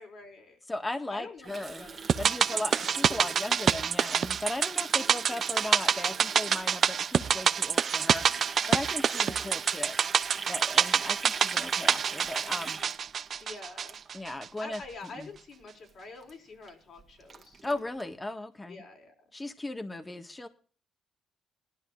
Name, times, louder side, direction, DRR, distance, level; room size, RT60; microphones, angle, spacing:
voice 1, 0.0-0.6 1.1-2.0 2.5-2.9 9.1-9.6 13.4-14.0 14.6-17.7 18.7-19.1, left 3 dB, 55° left, 2 dB, 4.5 m, -46 dB
voice 2, 0.7-1.9 2.2-8.3 8.7-10.0 10.5-12.8 14.1-14.8 15.2-15.3 17.6-18.8 19.3-20.5, left 2 dB, 15° left, 8 dB, 1.5 m, -37 dB
Water tap faucet, 1.4-14.4 14.7-15.0 15.3-15.6 15.9-16.0 16.2-16.3 16.7-16.8 17.0-18.0, right 5 dB, 35° right, 1.8 m, -42 dB
sound 1, 2.1-14.5 14.7-14.8, right 7 dB, 55° right, 0.6 m, -27 dB
20.0 x 12.0 x 2.4 m, 0.40 s
cardioid pair, 90°, 0 cm